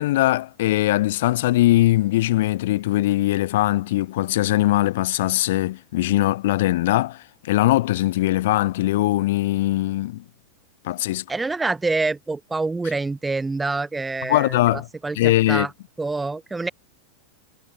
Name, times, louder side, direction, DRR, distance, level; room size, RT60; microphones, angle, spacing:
voice 1, 0.0-10.2 10.8-11.2 14.3-14.9 15.2-15.7, left 16 dB, 55° left, 1.8 m, -21 dB
voice 2, 11.3-15.7 16.0-16.7, right 3 dB, 10° right, 1.2 m, -26 dB
figure-of-eight pair, 90°, 0 cm